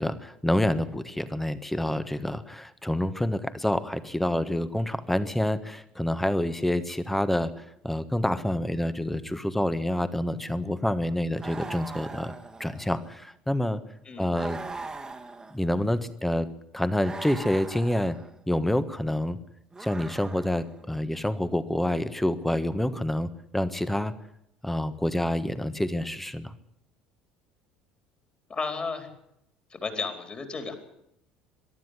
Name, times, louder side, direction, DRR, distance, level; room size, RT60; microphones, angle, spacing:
voice 1, 0.0-12.3 12.6-13.8 14.2-14.6 15.5-16.5 16.7-18.2 18.5-19.4 19.8-24.1 24.6-26.5, left 1 dB, 5° left, 13 dB, 1.5 m, -27 dB
sound 1, 11.4-13.1 14.3-15.9 17.0-18.4 19.7-20.8, right 3 dB, 15° right, 1.8 m, -40 dB
voice 2, 28.5-29.1 29.7-30.7, left 4 dB, 25° left, 6 dB, 4.1 m, -33 dB
23.0 x 12.5 x 9.8 m, 0.78 s
figure-of-eight pair, 60°, 4 cm